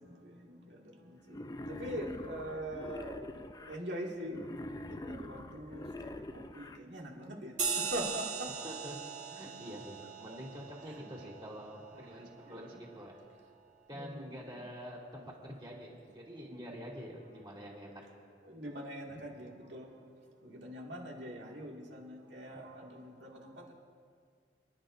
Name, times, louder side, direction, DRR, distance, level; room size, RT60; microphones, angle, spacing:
voice 1, 0.0-3.2 3.6-4.4 4.8-8.5 10.3-10.4 10.9-11.0 12.1-12.8 13.9-14.3 18.4-19.9 20.4-23.7, equal, 90° right, -1 dB, 2.2 m, -43 dB
Wild animals, 1.3-3.8 4.3-6.8, left 1 dB, 20° left, 0.5 m, -44 dB
sound 1, 7.6-12.5, right 5 dB, 45° right, 2.7 m, -39 dB
voice 2, 8.6-9.0 9.3-13.1 13.9-18.0 19.1-19.2, equal, 25° right, -4 dB, 2.7 m, -46 dB
28.5 x 11.0 x 2.6 m, 2.3 s
head